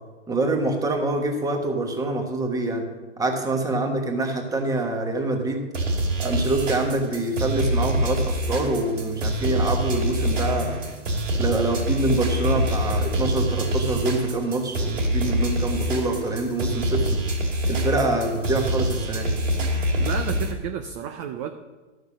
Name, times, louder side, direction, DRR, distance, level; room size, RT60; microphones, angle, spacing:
voice 1, 0.3-2.8 3.2-5.7 6.2-10.8 11.4-17.2 17.7-19.3, right 2 dB, 10° right, 4 dB, 1.3 m, -25 dB
sound 1, 5.7-20.5, equal, 85° right, 2.8 m, -25 dB
voice 2, 20.0-21.5, right 8 dB, 25° right, 7 dB, 0.5 m, -31 dB
12.5 x 6.5 x 6.2 m, 1.2 s
hypercardioid pair, 135°, 37 cm